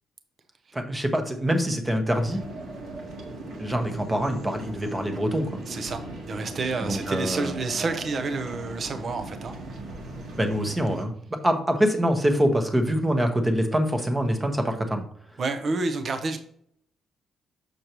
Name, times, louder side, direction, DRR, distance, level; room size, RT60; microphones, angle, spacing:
voice 1, 0.7-2.4 3.6-5.6 6.8-7.5 10.4-15.1, equal, 10° right, 5 dB, 1.0 m, -25 dB
sound 1, 2.1-11.0, right 2 dB, 65° right, 1.6 m, -38 dB
voice 2, 5.7-9.5 15.4-16.4, right 3 dB, 40° right, 8 dB, 0.7 m, -29 dB
6.7 x 6.3 x 3.0 m, 0.65 s
cardioid pair, 155°, 0 cm